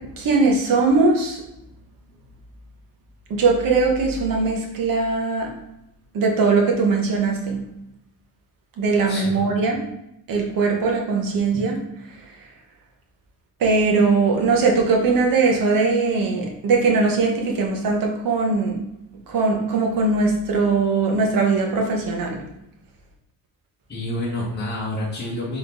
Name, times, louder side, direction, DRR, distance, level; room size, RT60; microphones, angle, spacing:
voice 1, 0.2-1.4 3.3-5.5 6.1-7.6 8.8-9.8 10.3-11.8 13.6-18.8 19.3-22.4, right 4 dB, 55° right, 1 dB, 1.1 m, -20 dB
voice 2, 9.1-9.4 23.9-25.6, left 1 dB, 25° left, -5 dB, 1.2 m, -28 dB
3.9 x 3.7 x 3.5 m, 0.83 s
cardioid pair, 155°, 40 cm